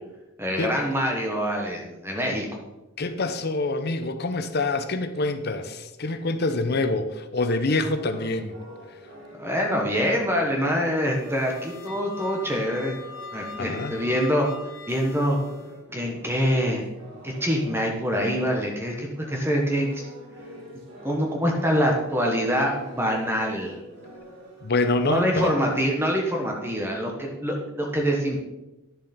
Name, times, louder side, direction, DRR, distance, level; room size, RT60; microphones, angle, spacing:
voice 1, 0.4-2.5 9.4-12.9 13.3-14.5 14.9-15.4 15.9-16.8 17.2-20.1 21.0-23.8 25.1-28.4, equal, 10° right, 0 dB, 1.2 m, -25 dB
voice 2, 3.0-8.6 13.5-14.0 24.6-25.5, left 2 dB, 55° left, 9 dB, 0.8 m, -26 dB
sound 1, 7.8-18.8 19.2-26.0, right 1 dB, 75° right, 2.7 m, -46 dB
sound 2, 10.9-15.8, left 3 dB, 80° left, 1.2 m, -41 dB
10.5 x 7.0 x 4.3 m, 1.0 s
head